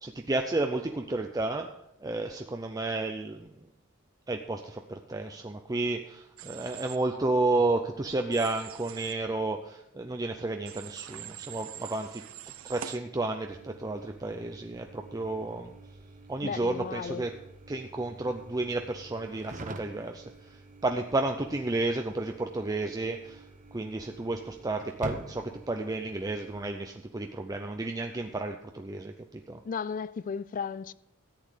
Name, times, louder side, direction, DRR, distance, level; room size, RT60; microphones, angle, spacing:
voice 1, 0.0-1.7 2.0-3.5 4.3-12.2 12.6-15.7 16.3-17.3 17.7-20.2 20.8-23.4 23.7-29.6, right 2 dB, 20° right, 0.5 m, -32 dB
Human voice / Train, 6.4-7.0 8.3-9.1 10.6-13.0, right 11 dB, 70° right, 0.6 m, -44 dB
sound 1, 13.5-26.7, right 2 dB, 35° right, 0.9 m, -47 dB
voice 2, 16.4-17.2 29.6-30.9, left 6 dB, 40° left, 0.3 m, -34 dB
13.5 x 8.6 x 5.0 m
head